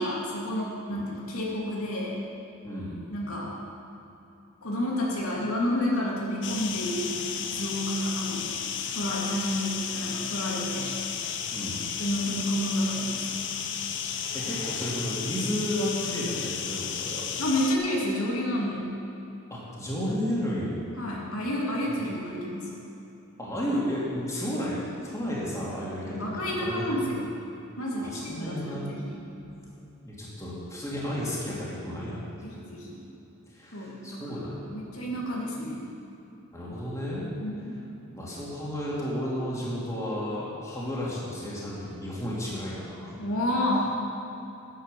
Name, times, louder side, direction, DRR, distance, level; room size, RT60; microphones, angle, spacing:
voice 1, 0.0-2.2 3.1-3.5 4.6-8.5 8.9-10.9 12.0-13.6 17.4-18.9 21.0-22.7 26.0-27.2 27.8-29.2 32.4-33.0 33.7-35.8 37.4-37.7 43.2-43.9, left 1 dB, 85° left, -4 dB, 2.6 m, -30 dB
voice 2, 2.6-3.0 11.5-11.8 14.3-17.3 19.5-20.8 23.4-27.0 28.0-28.9 30.0-32.4 33.5-34.9 36.5-37.3 38.1-43.1, equal, 15° left, -6 dB, 2.6 m, -32 dB
sound 1, 6.4-17.8, left 7 dB, 60° left, 0.8 m, -33 dB
9.9 x 9.7 x 6.8 m, 3.0 s
head